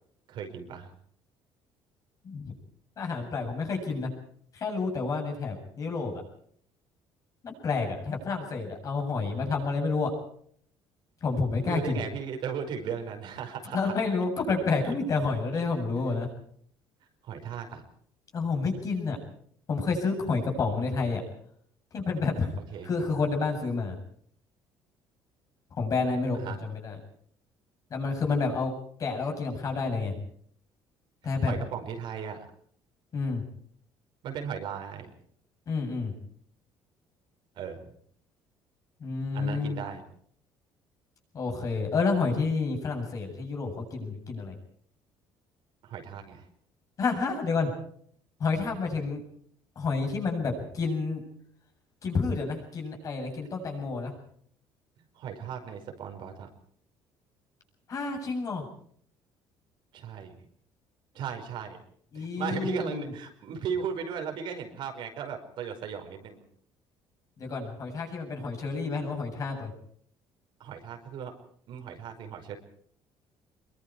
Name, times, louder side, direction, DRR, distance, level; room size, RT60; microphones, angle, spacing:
voice 1, 0.3-0.9 11.6-13.9 16.0-16.1 17.2-17.8 22.7-22.9 26.4-26.6 31.4-32.5 34.2-35.1 37.5-37.8 39.3-40.0 45.8-46.5 55.1-56.5 59.9-60.4 61.1-61.8 62.1-66.4 70.6-71.3 71.7-72.6, right 7 dB, 65° right, 5 dB, 5.0 m, -36 dB
voice 2, 3.0-4.1 4.5-6.2 7.4-10.1 11.2-12.0 13.7-16.3 18.3-19.2 19.7-21.2 21.9-22.6 22.8-24.0 25.8-27.0 27.9-28.7 29.0-30.2 31.2-31.5 33.1-33.4 35.7-36.1 39.0-39.8 41.3-44.6 47.0-47.7 48.4-49.2 49.8-51.2 52.0-54.1 57.9-58.6 62.1-63.1 67.4-69.7, left 4 dB, 40° left, 2 dB, 7.8 m, -29 dB
25.5 x 23.0 x 4.8 m, 0.62 s
cardioid pair, 140°, 9 cm